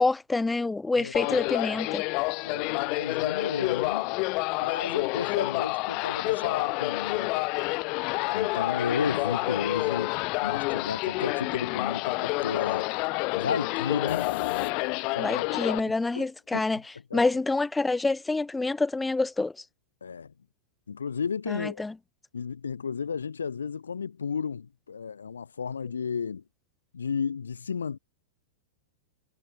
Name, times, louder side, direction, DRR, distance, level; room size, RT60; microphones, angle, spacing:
voice 1, 0.0-2.0 15.2-16.8 17.1-19.5 21.5-21.9, left 3 dB, 10° left, 1.5 m, -27 dB
sound 1, 1.1-15.8, left 29 dB, 45° left, 4.3 m, -29 dB
voice 2, 2.4-4.1 4.6-7.5 8.3-10.1 10.4-12.9 13.4-14.3 15.1-16.3 16.5-16.7 17.1-17.2 20.0-20.3 20.9-21.8 22.3-26.4 26.9-28.0, left 6 dB, 90° left, 4.4 m, -33 dB
sound 2, 14.1-15.3, left 11 dB, 70° left, 6.7 m, -37 dB
hypercardioid pair, 110°, 0 cm